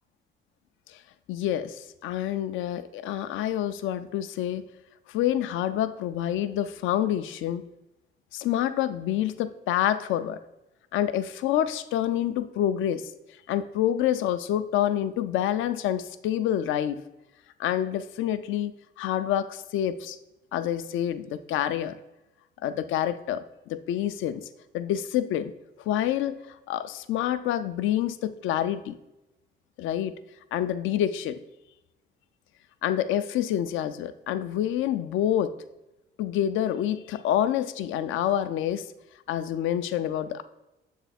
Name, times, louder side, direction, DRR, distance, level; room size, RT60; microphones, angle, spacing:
voice 1, 1.3-4.6 5.1-7.6 8.3-10.4 10.9-13.1 13.5-17.0 17.6-20.2 20.5-22.0 22.6-24.4 24.7-25.5 25.8-26.4 26.7-29.0 29.8-30.1 30.5-31.4 32.8-35.5 36.2-38.9 39.3-40.4, left 11 dB, 80° left, 11 dB, 0.4 m, -27 dB
7.1 x 3.4 x 4.1 m, 0.97 s
cardioid pair, 90°, 20 cm